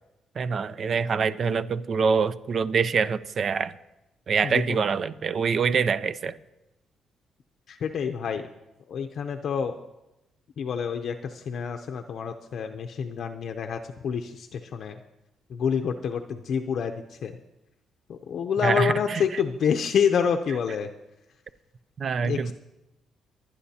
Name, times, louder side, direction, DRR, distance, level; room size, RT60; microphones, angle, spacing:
voice 1, 0.4-3.7 4.3-6.3 18.6-19.4 22.0-22.5, right 5 dB, 50° right, 15 dB, 0.5 m, -25 dB
voice 2, 7.7-8.5 8.9-9.7 10.6-11.2 11.5-15.0 15.5-16.9 17.2-17.3 18.1-20.9 22.2-22.4, left 7 dB, 60° left, 6 dB, 0.6 m, -27 dB
22.5 x 9.7 x 2.8 m, 0.96 s
cardioid pair, 90°, 0 cm